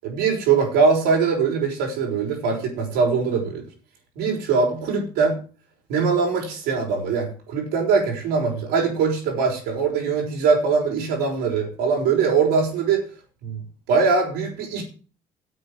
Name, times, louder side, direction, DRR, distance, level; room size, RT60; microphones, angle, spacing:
voice 1, 0.0-3.6 4.2-5.4 5.9-13.0 13.4-13.6 13.9-14.8, right 5 dB, 75° right, 0 dB, 5.7 m, -22 dB
9.8 x 8.5 x 7.7 m, 0.37 s
hypercardioid pair, 55°, 17 cm